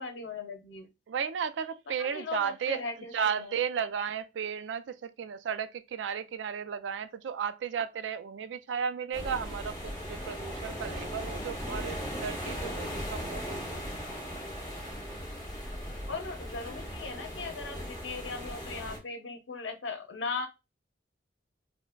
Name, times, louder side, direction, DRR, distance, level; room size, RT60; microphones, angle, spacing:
voice 1, 0.0-0.9 2.0-3.6 16.1-20.5, left 4 dB, 90° left, 0.8 m, -38 dB
voice 2, 1.1-13.6, right 7 dB, 85° right, 0.4 m, -34 dB
sound 1, 9.1-19.0, equal, 25° left, 1.4 m, -38 dB
5.6 x 2.1 x 2.2 m
head